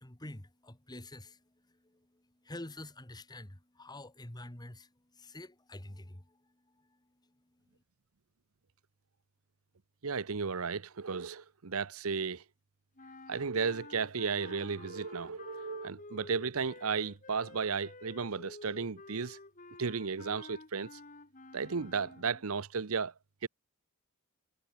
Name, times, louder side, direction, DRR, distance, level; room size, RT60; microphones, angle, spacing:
voice 1, 0.0-1.4 2.4-4.9 5.2-6.2, left 1 dB, 20° left, 1.8 m, -46 dB
voice 2, 10.0-12.4 13.3-19.4 19.8-20.9 21.5-23.1 23.4-23.5, right 5 dB, 80° right, 0.9 m, -34 dB
sound 1, 13.0-22.5, left 3 dB, 40° left, 3.3 m, -51 dB
head